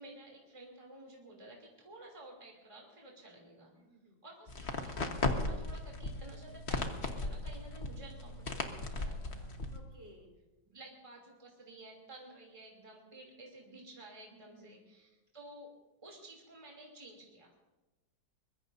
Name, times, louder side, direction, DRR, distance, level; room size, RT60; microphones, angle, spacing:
voice 1, 0.0-3.7 4.2-9.5 10.6-15.7 16.0-17.5, right 1 dB, 15° right, -1 dB, 3.0 m, -53 dB
voice 2, 3.8-4.2 9.6-10.3 14.4-14.8, equal, 35° right, 0 dB, 5.0 m, -58 dB
sound 1, 4.5-9.8, left 2 dB, 40° left, 1.4 m, -37 dB
23.5 x 22.0 x 2.7 m, 1.1 s
omnidirectional pair, 2.0 m